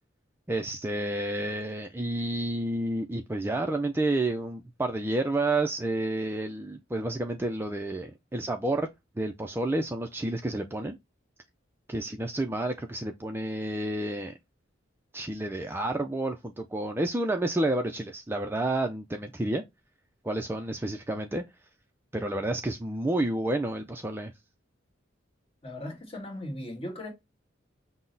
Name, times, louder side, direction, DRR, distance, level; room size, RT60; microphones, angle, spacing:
voice 1, 0.5-8.9 9.2-11.0 11.9-14.3 15.1-19.6 20.2-21.4 22.1-24.3, right 1 dB, 10° right, 0.4 m, -30 dB
voice 2, 25.6-27.1, left 1 dB, 30° left, 1.5 m, -38 dB
5.9 x 2.1 x 3.8 m
head